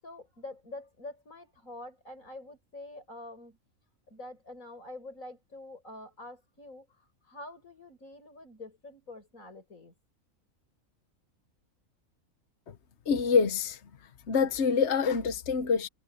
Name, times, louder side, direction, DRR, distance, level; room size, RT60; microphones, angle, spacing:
voice 1, 0.0-3.6 4.1-6.9 7.2-9.9, left 2 dB, 90° left, 7.4 m, -46 dB
voice 2, 13.1-13.8 14.3-15.9, left 5 dB, 60° left, 1.3 m, -26 dB
omnidirectional pair, 1.4 m